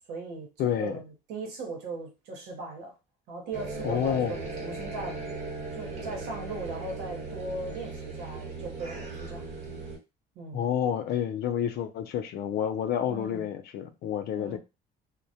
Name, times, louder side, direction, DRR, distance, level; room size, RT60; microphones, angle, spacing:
voice 1, 0.1-2.9 3.3-5.2 5.7-9.5 10.4-10.7 13.1-13.4 14.3-14.6, right 3 dB, 90° right, 0.9 m, -38 dB
voice 2, 0.6-1.0 3.8-4.4 10.5-14.6, left 9 dB, 65° left, 0.4 m, -29 dB
sound 1, 3.5-10.0, right 3 dB, 45° right, 0.9 m, -38 dB
2.1 x 2.1 x 2.7 m
cardioid pair, 110°, 17 cm